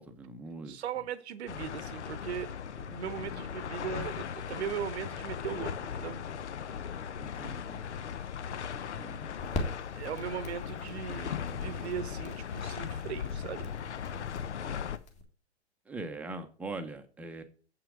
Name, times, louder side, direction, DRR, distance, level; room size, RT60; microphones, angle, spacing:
voice 1, 0.0-0.8 6.7-7.9 9.0-9.3 15.9-17.4, right 2 dB, 5° right, 0.7 m, -42 dB
voice 2, 0.7-6.2 10.0-13.7, right 9 dB, 70° right, 0.9 m, -39 dB
sound 1, 1.5-15.0, left 7 dB, 80° left, 0.8 m, -38 dB
sound 2, 7.3-15.2, left 2 dB, 20° left, 1.6 m, -43 dB
7.6 x 5.9 x 4.8 m
hypercardioid pair, 130°, 34 cm